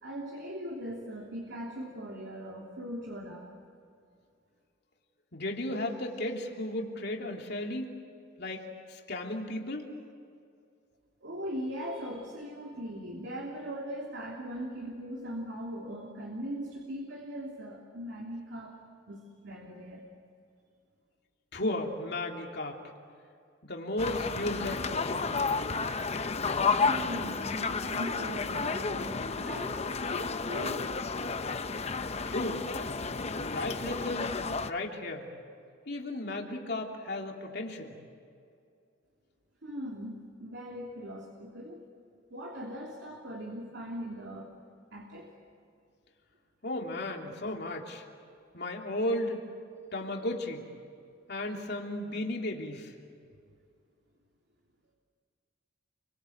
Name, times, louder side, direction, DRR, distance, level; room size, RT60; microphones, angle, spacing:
voice 1, 0.0-3.5 11.2-18.8 19.1-20.0 26.8-29.8 30.2-30.9 39.6-41.8 42.3-44.5 44.9-45.3, equal, 65° right, 0 dB, 3.1 m, -40 dB
voice 2, 5.3-7.9 8.4-9.8 21.5-22.8 23.6-25.4 32.2-32.7 33.4-35.3 35.9-37.9 46.6-48.0 48.5-49.4 49.9-50.6 51.3-52.9, left 1 dB, 60° left, 1 dB, 3.1 m, -34 dB
sound 1, 24.0-34.7, left 4 dB, 35° left, 0.8 m, -31 dB
29.5 x 24.5 x 8.0 m, 2.4 s
head